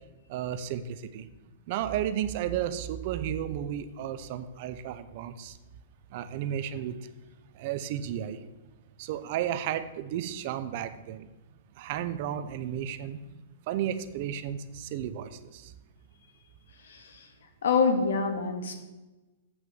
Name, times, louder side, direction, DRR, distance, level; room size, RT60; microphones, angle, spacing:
voice 1, 0.3-1.3 1.7-5.6 6.1-7.0 7.6-8.4 9.0-11.3 11.8-13.2 13.7-15.7, right 10 dB, 40° right, 12 dB, 0.6 m, -33 dB
voice 2, 17.6-18.7, left 5 dB, 85° left, 5 dB, 1.9 m, -25 dB
8.0 x 6.2 x 7.1 m, 1.1 s
hypercardioid pair, 170°, 0 cm